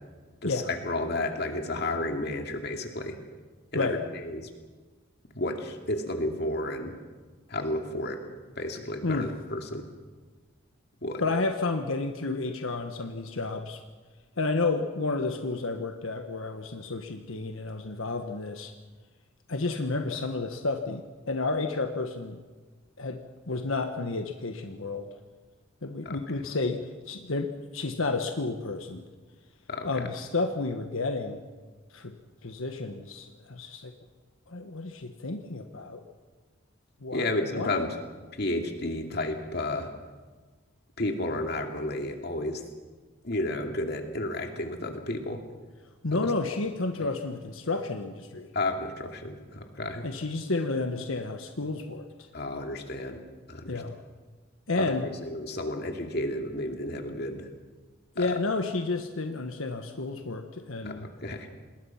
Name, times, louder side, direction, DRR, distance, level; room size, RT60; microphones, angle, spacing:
voice 1, 0.4-3.2 3.7-4.5 5.3-6.9 7.5-8.2 8.6-9.9 11.0-11.2 26.1-26.2 29.7-30.1 37.1-37.9 38.4-39.9 41.0-42.6 43.2-45.4 46.1-46.2 48.5-50.0 52.3-53.2 53.5-53.8 54.8-57.5 58.2-58.4 60.8-61.5, left 1 dB, 50° left, 4 dB, 2.5 m, -32 dB
voice 2, 9.0-9.3 11.2-13.8 14.4-18.7 19.5-22.4 23.0-23.2 23.5-25.1 25.8-29.0 29.8-31.5 31.9-32.2 32.4-33.9 34.5-36.0 37.0-37.2 37.5-37.9 46.0-48.5 50.0-52.3 53.7-54.0 54.7-55.1 58.2-61.1, left 3 dB, 85° left, 6 dB, 1.4 m, -31 dB
26.5 x 20.5 x 5.8 m, 1.4 s
head